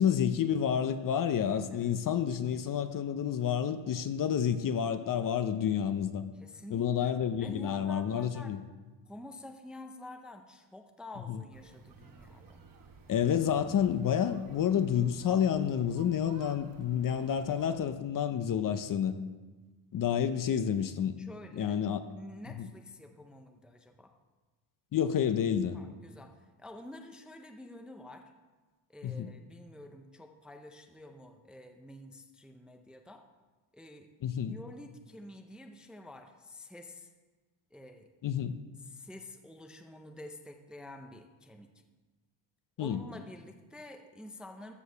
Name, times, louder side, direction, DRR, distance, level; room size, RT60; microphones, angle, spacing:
voice 1, 0.0-6.2 6.7-8.6 11.3-11.4 13.1-19.2 19.9-21.2 21.5-22.0 22.6-22.7 24.9-25.8 29.0-29.3 34.2-34.6 38.2-38.6 42.8-43.0, left 8 dB, 45° left, 10 dB, 0.6 m, -29 dB
voice 2, 6.3-7.1 7.4-8.6 9.1-12.6 21.2-21.8 22.1-24.1 25.7-28.3 28.9-33.2 33.7-34.1 34.5-37.1 37.7-38.1 38.9-41.7 42.8-44.7, left 1 dB, ahead, 5 dB, 0.5 m, -49 dB
sound 1, 11.5-17.8, right 4 dB, 45° right, 1.2 m, -54 dB
14.0 x 4.7 x 6.9 m, 1.3 s
cardioid pair, 145°, 48 cm